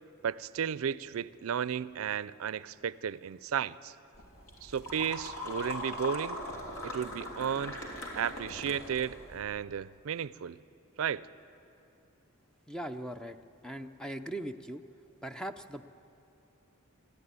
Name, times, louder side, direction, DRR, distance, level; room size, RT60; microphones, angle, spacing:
voice 1, 0.2-3.9 4.6-6.4 6.8-7.8 8.1-10.6 11.0-11.3, right 8 dB, 75° right, 18 dB, 0.4 m, -34 dB
sound 1, 4.1-9.4, left 1 dB, 85° left, 3.3 m, -40 dB
voice 2, 12.7-13.4 13.6-14.8 15.2-15.8, right 1 dB, 5° left, 8 dB, 0.4 m, -39 dB
20.0 x 14.0 x 9.6 m, 2.9 s
head